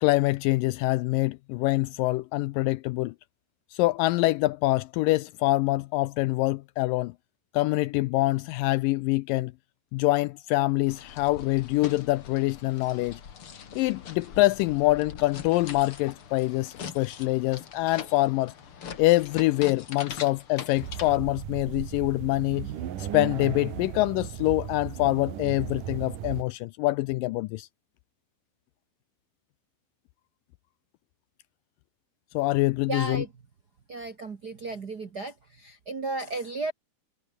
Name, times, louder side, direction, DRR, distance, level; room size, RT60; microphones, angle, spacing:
voice 1, 0.0-3.1 3.7-7.1 7.5-9.5 9.9-13.2 13.8-18.5 19.0-22.7 23.0-27.7 32.3-33.2, left 19 dB, 80° left, 2.0 m, -25 dB
sound 1, 10.9-21.2, left 7 dB, 40° left, 2.5 m, -42 dB
sound 2, 20.8-26.4, right 10 dB, 65° right, 3.2 m, -36 dB
voice 2, 32.9-33.3 33.9-36.7, right 3 dB, 45° right, 1.2 m, -34 dB
omnidirectional pair, 4.2 m